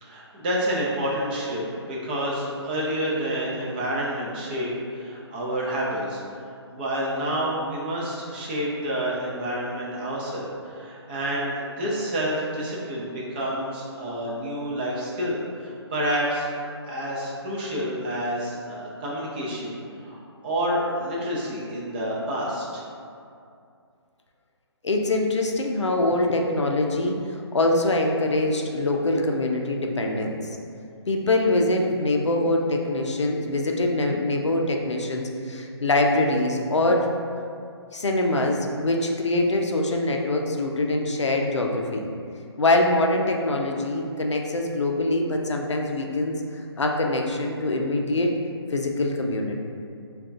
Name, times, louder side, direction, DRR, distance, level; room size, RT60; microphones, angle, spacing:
voice 1, 0.0-6.2 6.5-16.5 16.8-22.8, equal, 20° right, -5 dB, 0.4 m, -29 dB
voice 2, 24.8-30.4 31.1-37.1 37.9-42.1 42.6-46.4 46.8-48.3 48.7-49.6, left 2 dB, 90° left, 1 dB, 0.4 m, -24 dB
3.5 x 2.3 x 2.5 m, 2.4 s
figure-of-eight pair, 145°, 15 cm